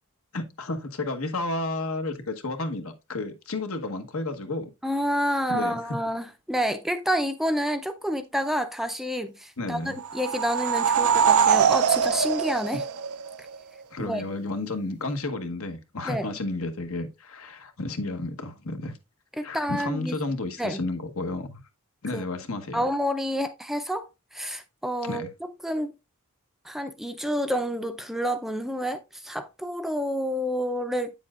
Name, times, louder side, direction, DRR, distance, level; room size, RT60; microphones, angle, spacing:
voice 1, 0.3-4.7 5.5-5.8 9.6-10.0 13.9-18.9 19.4-21.6 22.0-22.8 25.0-25.3, left 2 dB, 75° left, 1.2 m, -32 dB
voice 2, 4.8-12.8 14.0-14.3 16.1-16.3 19.4-20.1 20.6-20.8 22.1-22.2 22.7-25.3 25.6-25.9 26.6-31.1, equal, ahead, 0.4 m, -29 dB
sound 1, 10.0-13.5, right 7 dB, 85° right, 0.5 m, -22 dB
8.6 x 7.1 x 2.4 m
head